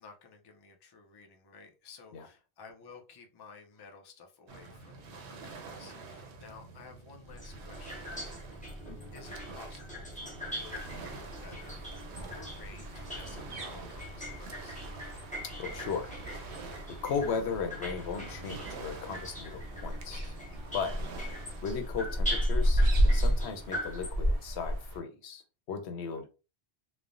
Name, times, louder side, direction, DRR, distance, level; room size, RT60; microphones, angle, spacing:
voice 1, 0.0-8.5 9.1-14.8 20.7-20.8 26.0-26.2, left 5 dB, 40° left, 0.3 m, -53 dB
Waves surf, 4.5-21.8, right 3 dB, 85° right, 0.9 m, -48 dB
sound 1, 7.3-24.1, equal, 10° left, 0.8 m, -42 dB
sound 2, 10.7-25.0, equal, 50° right, 0.4 m, -33 dB
voice 2, 15.6-16.7 17.0-20.4 20.7-21.0 21.6-25.4 25.7-26.3, left 5 dB, 85° left, 0.9 m, -36 dB
3.2 x 2.0 x 2.4 m
omnidirectional pair, 1.1 m